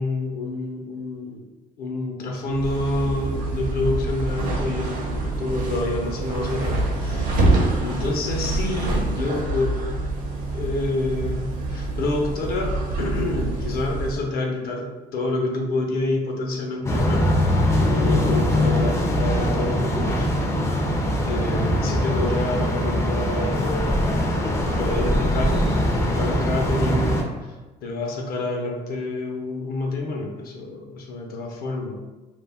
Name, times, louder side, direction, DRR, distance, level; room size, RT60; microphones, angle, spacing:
voice 1, 0.0-1.4 1.8-7.5 7.8-9.7 10.5-17.3 17.8-20.3 21.2-27.6 27.8-32.0, left 2 dB, 60° left, 1 dB, 0.6 m, -28 dB
sound 1, 2.5-14.2, right 2 dB, 55° right, 0.6 m, -26 dB
sound 2, 16.8-27.2, equal, 15° left, 0.4 m, -22 dB
2.3 x 2.1 x 3.4 m, 1.2 s
cardioid pair, 110°, 17 cm